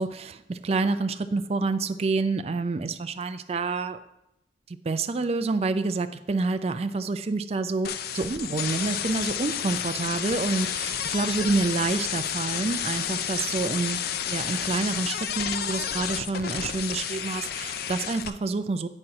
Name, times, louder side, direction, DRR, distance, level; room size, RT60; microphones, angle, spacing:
voice 1, 0.0-4.0 4.7-14.0 14.3-18.9, right 3 dB, 35° right, 10 dB, 0.3 m, -28 dB
sound 1, 7.8-18.3, left 9 dB, 55° left, 0.4 m, -31 dB
8.8 x 4.3 x 4.8 m, 0.85 s
head